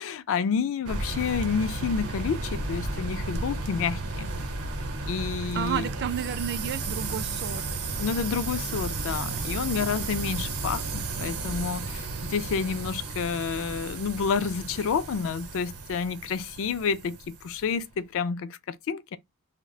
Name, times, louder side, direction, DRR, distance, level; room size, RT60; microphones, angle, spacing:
voice 1, 0.0-4.3 5.1-5.8 8.0-19.2, left 6 dB, 65° left, 0.3 m, -29 dB
sound 1, 0.9-17.7, right 3 dB, 75° right, 0.8 m, -33 dB
voice 2, 5.5-7.6, right 8 dB, 50° right, 0.3 m, -31 dB
2.3 x 2.1 x 3.7 m
head